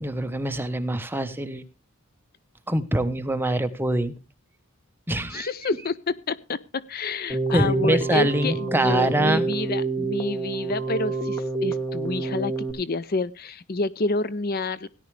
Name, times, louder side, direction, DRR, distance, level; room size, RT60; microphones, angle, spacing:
voice 1, 0.0-1.6 2.7-4.1 5.1-5.5 7.5-9.5, right 1 dB, 10° right, 9 dB, 1.1 m, -24 dB
voice 2, 5.3-14.9, left 3 dB, 45° left, 17 dB, 0.6 m, -28 dB
Keyboard (musical), 7.3-12.7, right 3 dB, 15° left, 2.3 m, -28 dB
17.5 x 11.0 x 3.3 m, 0.30 s
head